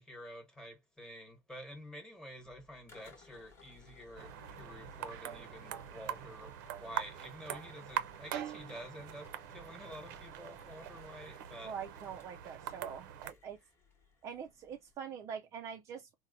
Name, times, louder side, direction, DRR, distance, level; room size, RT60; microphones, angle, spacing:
voice 1, 0.0-11.7, equal, 5° left, 1.1 m, -49 dB
sound 1, 2.4-14.9, left 4 dB, 25° left, 1.0 m, -62 dB
sound 2, 4.2-13.3, right 11 dB, 80° right, 0.6 m, -43 dB
voice 2, 11.6-13.6 14.2-16.1, right 7 dB, 30° right, 0.3 m, -44 dB
4.0 x 2.1 x 2.5 m
cardioid pair, 160°, 10 cm